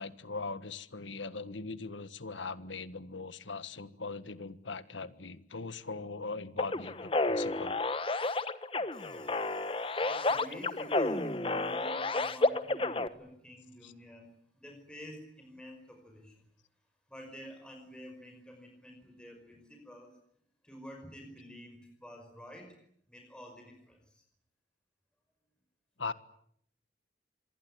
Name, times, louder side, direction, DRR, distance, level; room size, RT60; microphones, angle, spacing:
voice 1, 0.0-7.8 13.8-13.9 26.0-26.1, left 4 dB, 85° left, 13 dB, 1.6 m, -40 dB
sound 1, 6.6-13.1, left 2 dB, 30° left, 1.2 m, -31 dB
voice 2, 8.9-14.3 14.5-16.5 17.1-20.1 20.6-22.7 23.1-24.2, equal, 5° left, 3 dB, 5.3 m, -49 dB
26.5 x 21.5 x 9.9 m, 0.70 s
head